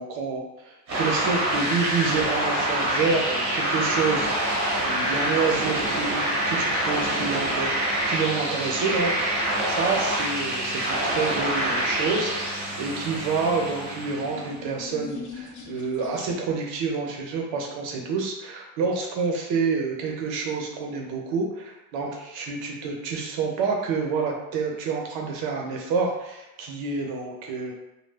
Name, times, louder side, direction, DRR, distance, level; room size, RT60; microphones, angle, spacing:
voice 1, 0.0-9.1 9.7-27.7, right 4 dB, 70° right, 0 dB, 0.8 m, -28 dB
sound 1, 0.9-14.6, right 1 dB, 35° right, 0.9 m, -26 dB
sound 2, 13.9-16.7, left 5 dB, 40° left, 0.5 m, -42 dB
2.3 x 2.0 x 3.3 m, 0.95 s
cardioid pair, 115°, 46 cm